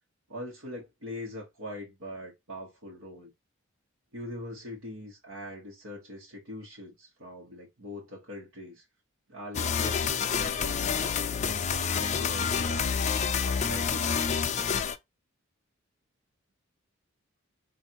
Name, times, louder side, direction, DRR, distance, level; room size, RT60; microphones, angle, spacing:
voice 1, 0.3-3.3 4.1-8.8 9.3-11.4 12.0-13.1 13.4-14.0, left 1 dB, 85° right, 1.3 m, -42 dB
sound 1, 9.5-15.0, left 6 dB, 35° left, 0.4 m, -28 dB
3.9 x 2.6 x 4.4 m
head